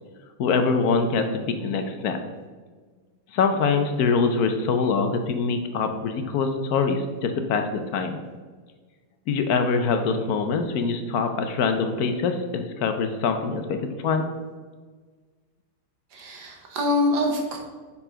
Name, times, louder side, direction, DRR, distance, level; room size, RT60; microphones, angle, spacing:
voice 1, 0.4-2.2 3.3-8.2 9.3-14.3, left 5 dB, 70° left, 7 dB, 1.1 m, -24 dB
voice 2, 16.1-17.6, left 2 dB, 80° right, 2 dB, 1.7 m, -25 dB
5.7 x 4.6 x 4.9 m, 1.4 s
omnidirectional pair, 1.8 m